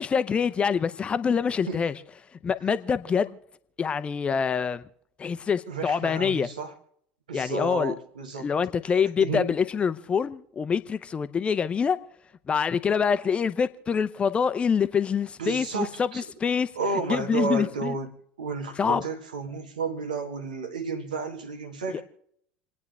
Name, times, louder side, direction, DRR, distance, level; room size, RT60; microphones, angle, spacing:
voice 1, 0.0-1.9 2.4-3.4 3.8-4.8 5.2-6.5 7.3-7.9 8.4-12.0 12.5-16.7 17.1-18.0 18.8-19.0 21.9-22.0, left 6 dB, 25° left, 0.9 m, -25 dB
voice 2, 5.7-6.7 7.3-8.5 9.2-9.5 15.4-16.2 16.7-18.1 18.4-22.0, right 4 dB, 75° right, 1.7 m, -32 dB
29.0 x 9.7 x 3.4 m
figure-of-eight pair, 70°, 4 cm